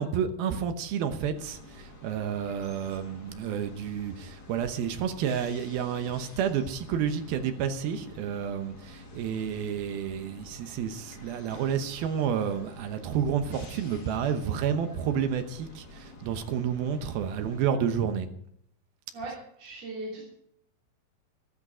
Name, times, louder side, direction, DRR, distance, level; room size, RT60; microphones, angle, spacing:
voice 1, 0.0-18.3, right 8 dB, 75° right, 8 dB, 2.8 m, -30 dB
sound 1, 1.3-17.7, left 2 dB, 50° left, 1.2 m, -49 dB
voice 2, 19.1-20.2, right 2 dB, 40° right, -5 dB, 4.2 m, -38 dB
13.5 x 12.5 x 5.0 m, 0.71 s
omnidirectional pair, 4.6 m